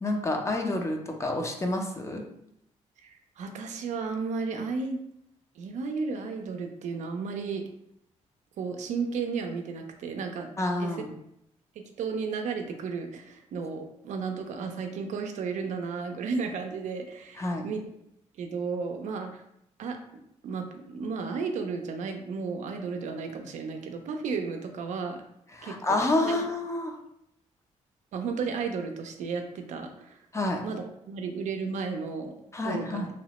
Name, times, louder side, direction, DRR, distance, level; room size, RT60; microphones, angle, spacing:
voice 1, 0.0-2.2 10.6-11.1 17.4-17.7 25.5-26.9 30.3-30.6 32.5-33.1, left 2 dB, 25° left, 2 dB, 0.5 m, -28 dB
voice 2, 3.0-5.0 5.6-7.6 8.6-10.5 10.8-11.1 12.0-17.8 18.4-19.4 19.8-25.2 25.6-26.4 28.1-30.2 30.6-32.3 32.6-33.1, right 5 dB, 75° right, 4 dB, 0.4 m, -33 dB
2.9 x 2.0 x 2.9 m, 0.75 s
cardioid pair, 90°, 12 cm